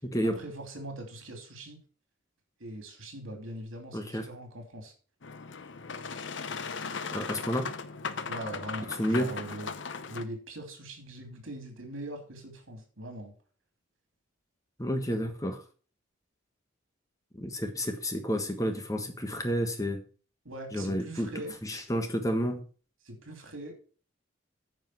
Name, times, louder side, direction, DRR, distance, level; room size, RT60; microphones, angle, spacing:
voice 1, 0.2-1.8 2.6-4.9 8.3-9.7 10.1-13.3 20.4-21.6 23.0-23.8, right 1 dB, 85° right, 5 dB, 2.8 m, -41 dB
voice 2, 3.9-4.3 7.1-7.7 9.0-9.3 14.8-15.6 17.3-20.0 20.7-21.3 21.6-22.6, equal, 15° left, 5 dB, 1.3 m, -30 dB
Boat Water vehicle, 5.2-10.2, left 5 dB, 65° left, 0.7 m, -38 dB
9.6 x 5.2 x 6.1 m, 0.39 s
head